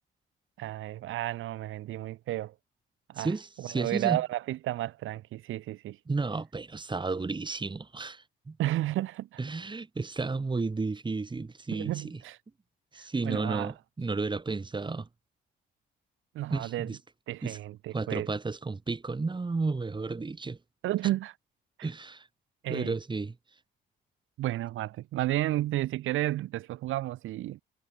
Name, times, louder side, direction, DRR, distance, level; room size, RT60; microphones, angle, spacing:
voice 1, 0.6-2.5 3.1-3.3 3.6-6.0 8.6-9.4 11.7-12.4 13.2-13.7 16.3-17.0 17.3-18.3 20.8-21.3 22.6-23.0 24.4-27.6, right 15 dB, 85° right, 3.2 m, -32 dB
voice 2, 3.2-4.2 6.1-8.6 9.4-12.2 12.9-15.1 16.5-17.0 17.4-17.6 17.9-20.6 21.8-22.3 22.7-23.3, right 3 dB, 25° right, 2.4 m, -32 dB
cardioid pair, 90°, 20 cm